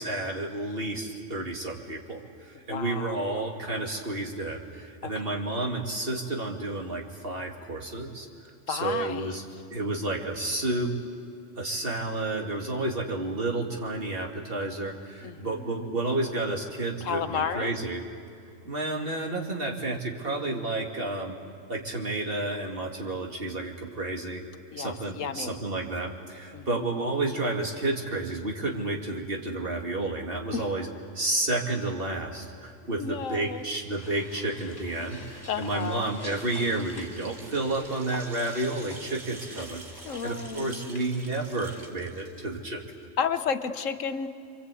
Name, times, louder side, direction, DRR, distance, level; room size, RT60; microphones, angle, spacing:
voice 1, 0.0-9.4 9.7-11.0 11.6-18.0 18.6-21.4 21.7-24.4 24.8-30.9 31.1-39.8 40.2-42.8, right 2 dB, 45° right, 0 dB, 2.6 m, -31 dB
voice 2, 2.7-3.2 5.0-5.4 8.7-9.4 15.2-16.0 17.0-17.7 24.7-25.5 26.5-26.9 30.5-30.7 33.0-33.6 35.5-36.1 40.0-41.0 43.2-44.3, left 6 dB, 75° left, 9 dB, 1.3 m, -32 dB
sound 1, 33.0-41.9, left 1 dB, 15° left, 1.9 m, -49 dB
sound 2, 34.6-43.0, right 3 dB, 80° right, 2.3 m, -48 dB
27.5 x 24.5 x 8.4 m, 2.5 s
omnidirectional pair, 1.3 m